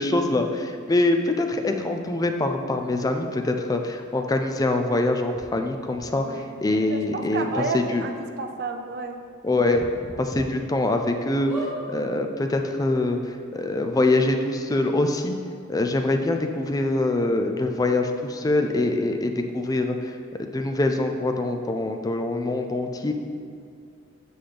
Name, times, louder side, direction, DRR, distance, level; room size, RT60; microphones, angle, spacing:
voice 1, 0.0-8.1 9.4-9.9 10.2-11.5 11.9-15.3 15.7-20.1 20.4-23.1, left 2 dB, 20° left, 5 dB, 0.4 m, -24 dB
sound 1, 5.3-5.4 5.9-6.0 7.0-7.1 7.4-7.5 7.9-8.0 9.7-10.4 10.9-11.0 11.4-11.7 12.6-12.7 12.9-13.0, right 1 dB, 10° right, 1.3 m, -36 dB
voice 2, 6.2-9.2, right 4 dB, 50° right, 5 dB, 0.5 m, -31 dB
7.1 x 5.8 x 3.3 m, 2.4 s
head